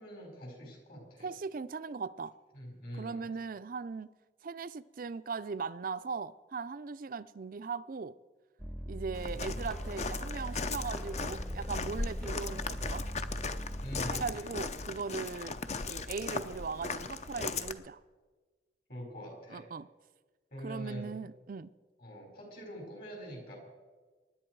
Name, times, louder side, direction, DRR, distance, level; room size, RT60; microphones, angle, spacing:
voice 1, 0.0-1.3 2.5-3.3 13.8-14.5 18.9-19.7 20.5-21.1 22.0-23.6, equal, 55° left, 0 dB, 5.0 m, -44 dB
voice 2, 1.2-2.3 3.0-4.1 4.4-8.2 8.9-13.1 14.1-18.0 19.5-19.9 20.6-21.7, right 4 dB, 50° right, 15 dB, 0.4 m, -39 dB
sound 1, 8.6-14.3, equal, ahead, 0.7 m, -40 dB
Walk footsteps, 9.1-17.7, left 3 dB, 40° left, 0.7 m, -38 dB
24.5 x 10.5 x 4.7 m, 1.3 s
head